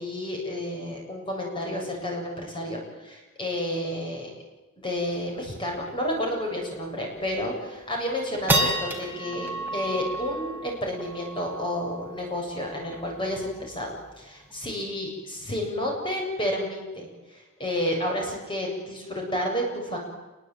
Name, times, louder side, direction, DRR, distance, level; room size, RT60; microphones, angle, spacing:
voice 1, 0.0-4.3 4.8-20.0, left 1 dB, 25° left, 0 dB, 7.7 m, -31 dB
sound 1, 5.0-5.1 5.3-5.4 5.8-6.1 6.6-6.7 7.2-7.6 8.0-14.6, right 1 dB, 10° right, 4.1 m, -32 dB
28.5 x 22.5 x 9.2 m, 1.1 s
head